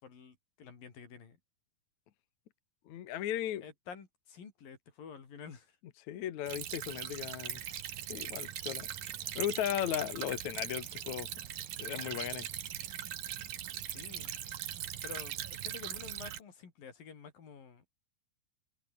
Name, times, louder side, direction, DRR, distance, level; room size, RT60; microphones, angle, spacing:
voice 1, 0.0-1.4 3.6-5.8 13.9-14.4 15.0-17.9, left 6 dB, 85° left, 5.7 m, -50 dB
voice 2, 2.9-3.6 6.1-7.6 8.1-11.3 11.8-12.5, left 11 dB, 65° left, 2.5 m, -36 dB
Stream / Trickle dribble, 6.5-16.4, right 11 dB, 80° right, 3.3 m, -40 dB
omnidirectional pair, 3.9 m